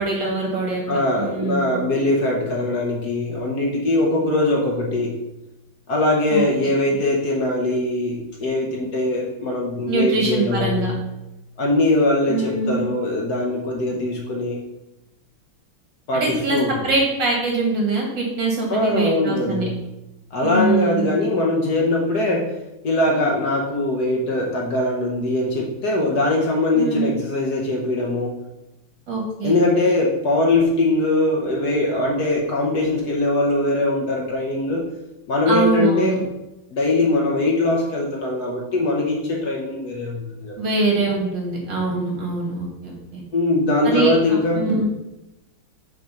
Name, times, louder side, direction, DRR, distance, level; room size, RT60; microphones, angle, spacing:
voice 1, 0.0-1.7 6.3-6.4 9.9-10.9 12.3-12.9 16.1-19.7 20.4-21.1 26.7-27.1 29.1-29.6 35.5-36.2 40.6-43.2 43.8-44.9, right 3 dB, 60° right, -1 dB, 2.3 m, -23 dB
voice 2, 0.9-5.1 5.9-11.0 11.6-14.6 16.1-16.8 18.7-19.8 20.3-22.5 22.8-28.4 29.4-34.9 35.3-36.1 36.7-40.6 43.3-44.6, left 2 dB, 55° left, -1 dB, 1.3 m, -21 dB
6.6 x 3.8 x 5.6 m, 0.96 s
omnidirectional pair, 2.3 m